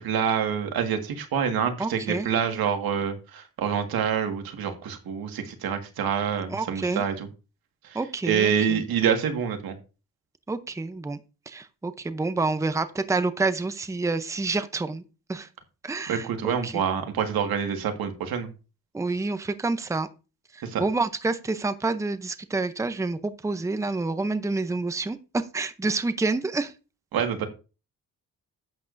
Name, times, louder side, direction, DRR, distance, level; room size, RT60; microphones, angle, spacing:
voice 1, 0.0-7.3 7.8-8.0 8.2-9.8 16.1-18.5 20.6-20.8 27.1-27.5, right 7 dB, 90° right, 5 dB, 1.8 m, -26 dB
voice 2, 1.8-2.3 6.5-7.0 7.9-8.8 10.5-11.2 11.5-15.0 15.3-15.5 15.8-16.8 18.9-20.1 20.5-26.7, right 3 dB, 10° right, 11 dB, 0.6 m, -28 dB
11.5 x 8.5 x 2.6 m, 0.32 s
cardioid pair, 135°, 35 cm